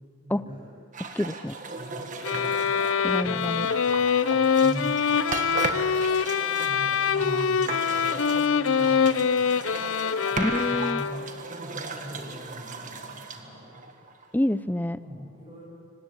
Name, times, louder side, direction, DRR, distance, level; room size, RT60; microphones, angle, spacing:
voice 1, 0.2-0.7 1.8-2.7 3.2-5.9 6.6-9.8 10.3-13.8 14.9-15.6, equal, 25° right, -8 dB, 6.8 m, -41 dB
sound 1, 0.9-14.5, right 4 dB, 40° right, 1.7 m, -37 dB
voice 2, 1.1-1.6 3.0-3.7 10.4-11.0 14.3-15.0, left 1 dB, 10° left, 15 dB, 0.5 m, -27 dB
sound 2, 2.2-11.4, left 6 dB, 75° left, 0.6 m, -24 dB
24.5 x 18.0 x 9.9 m, 2.2 s
head